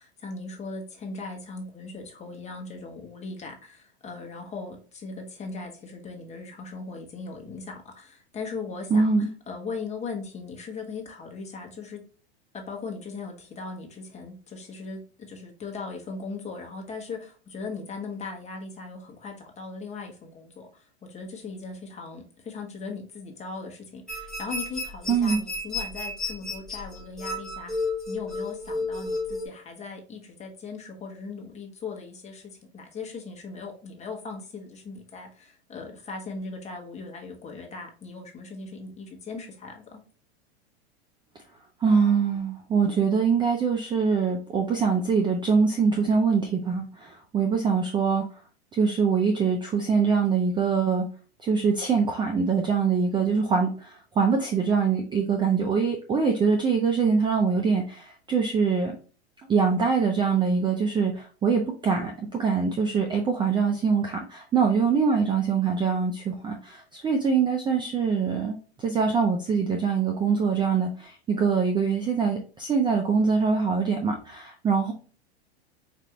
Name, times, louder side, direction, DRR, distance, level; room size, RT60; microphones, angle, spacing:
voice 1, 0.0-12.0 12.5-27.8 28.1-40.0, left 4 dB, 20° left, 2 dB, 1.0 m, -39 dB
voice 2, 8.9-9.3 25.1-25.4 41.8-48.2 48.7-51.1 51.4-58.9 59.5-74.9, right 5 dB, 15° right, 3 dB, 0.4 m, -24 dB
sound 1, 24.1-29.5, left 2 dB, ahead, 0.9 m, -32 dB
4.7 x 2.5 x 2.9 m, 0.39 s
hypercardioid pair, 110°, 33 cm